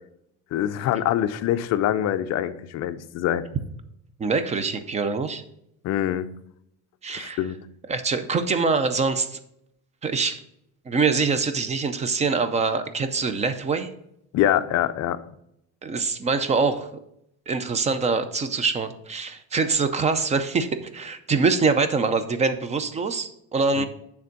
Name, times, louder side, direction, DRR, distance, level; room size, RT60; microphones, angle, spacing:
voice 1, 0.5-3.4 5.8-6.3 7.1-7.6 14.3-15.2 23.8-23.9, left 11 dB, 45° left, 10 dB, 0.5 m, -24 dB
voice 2, 4.2-5.4 7.0-7.4 7.9-9.4 10.0-10.4 10.9-13.9 15.8-16.9 17.5-23.9, right 4 dB, 20° right, 10 dB, 0.4 m, -24 dB
9.3 x 3.5 x 5.2 m, 0.76 s
cardioid pair, 145°, 38 cm